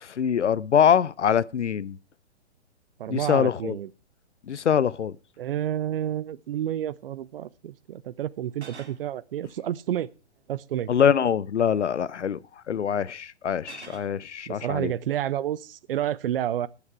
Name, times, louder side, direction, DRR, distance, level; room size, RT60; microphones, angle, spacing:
voice 1, 0.0-2.0 3.1-3.8 4.5-5.1 10.9-12.4 12.7-14.9, left 8 dB, 85° left, 0.7 m, -23 dB
voice 2, 3.0-3.9 5.4-10.1 10.5-10.9 14.5-16.7, right 11 dB, 55° right, 0.8 m, -30 dB
sound 1, 6.0-6.1 8.5-9.0 10.3-10.7 13.6-14.2, right 5 dB, 75° right, 3.0 m, -47 dB
19.0 x 7.2 x 4.6 m
hypercardioid pair, 130°, 34 cm